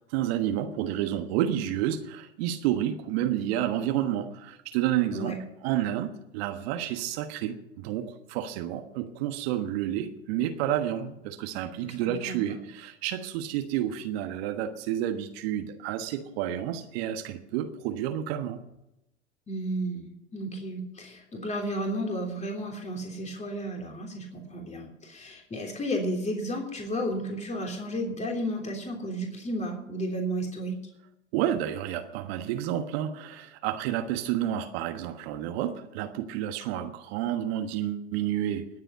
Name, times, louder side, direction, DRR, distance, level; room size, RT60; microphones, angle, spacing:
voice 1, 0.1-5.4 5.6-18.6 31.3-38.7, right 11 dB, 60° right, 7 dB, 1.4 m, -30 dB
voice 2, 11.8-12.6 19.5-30.8, equal, 20° left, 1 dB, 3.3 m, -33 dB
20.5 x 7.7 x 5.7 m, 0.88 s
hypercardioid pair, 80°, 35 cm